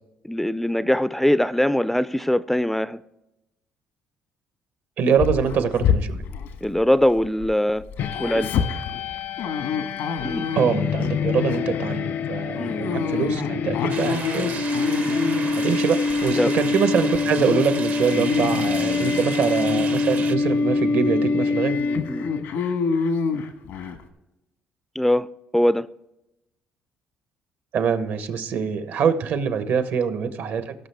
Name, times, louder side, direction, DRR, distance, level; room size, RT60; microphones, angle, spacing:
voice 1, 0.3-3.0 6.6-7.9 8.2-8.5 10.2-10.5 12.6-12.8 16.4-16.5 22.1-22.3 25.0-25.3 25.5-25.9, left 1 dB, 5° left, 0.3 m, -21 dB
voice 2, 5.0-6.2 10.5-14.6 15.5-21.8 27.7-30.7, right 6 dB, 70° right, 1.0 m, -24 dB
Dog, 5.2-7.5 7.8-11.1 11.5-11.8 12.6-15.7 16.1-16.8 17.2-17.6 18.0-19.2 19.7-19.9 20.5-20.6 21.0-21.1 21.7-24.0, left 6 dB, 85° left, 1.3 m, -27 dB
sound 1, 8.0-22.5, left 4 dB, 70° left, 0.7 m, -25 dB
sound 2, 13.9-20.4, right 6 dB, 45° right, 0.6 m, -34 dB
17.5 x 6.2 x 3.4 m
cardioid pair, 100°, 4 cm